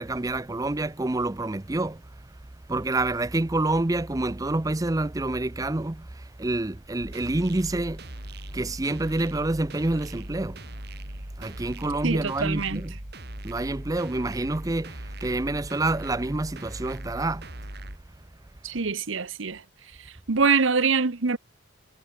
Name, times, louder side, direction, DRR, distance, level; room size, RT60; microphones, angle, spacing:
voice 1, 0.0-2.0 2.7-8.0 8.5-10.6 11.4-12.9 13.4-17.5, right 2 dB, 15° right, 0.5 m, -27 dB
sound 1, 7.0-18.0, right 1 dB, 50° right, 4.0 m, -39 dB
voice 2, 12.0-12.8 18.6-19.6 20.3-21.4, right 5 dB, 70° right, 1.0 m, -24 dB
head